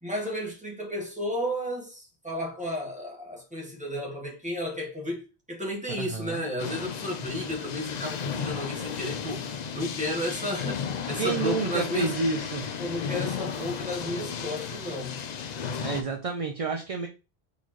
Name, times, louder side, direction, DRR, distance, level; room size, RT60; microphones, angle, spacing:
voice 1, 0.0-12.1 12.8-15.2, left 1 dB, 5° right, 1.4 m, -33 dB
voice 2, 6.0-6.4 11.2-12.7 15.8-17.1, right 4 dB, 45° right, 0.5 m, -29 dB
sound 1, 6.6-16.0, left 7 dB, 55° left, 0.5 m, -34 dB
4.2 x 4.0 x 3.1 m
omnidirectional pair, 1.1 m